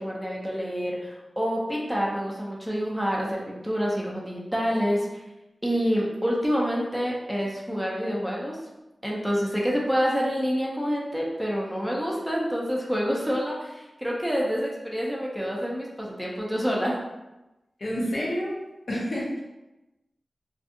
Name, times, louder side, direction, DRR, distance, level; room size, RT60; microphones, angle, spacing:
voice 1, 0.0-5.1 5.6-8.6 9.0-17.0, equal, ahead, -4 dB, 0.5 m, -27 dB
voice 2, 17.8-18.5 18.9-19.4, equal, 60° left, -4 dB, 0.7 m, -28 dB
2.5 x 2.3 x 2.6 m, 1.0 s
wide cardioid pair, 75°, 0 cm